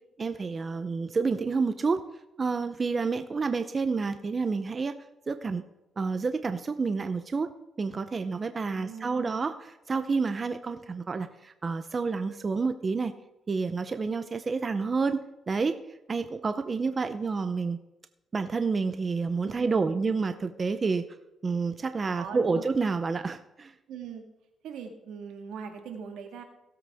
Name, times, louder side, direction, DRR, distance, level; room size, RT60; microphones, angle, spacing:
voice 1, 0.2-2.0 2.4-4.9 5.3-5.6 6.0-7.5 7.8-13.1 13.5-15.8 16.1-17.8 18.3-21.0 21.4-23.7, right 4 dB, 35° right, 10 dB, 0.6 m, -29 dB
voice 2, 8.7-9.4 19.5-20.0 22.1-22.6 23.9-24.2 24.6-26.4, right 6 dB, 85° right, 4 dB, 1.8 m, -41 dB
17.5 x 7.9 x 3.5 m, 0.91 s
cardioid pair, 90°, 0 cm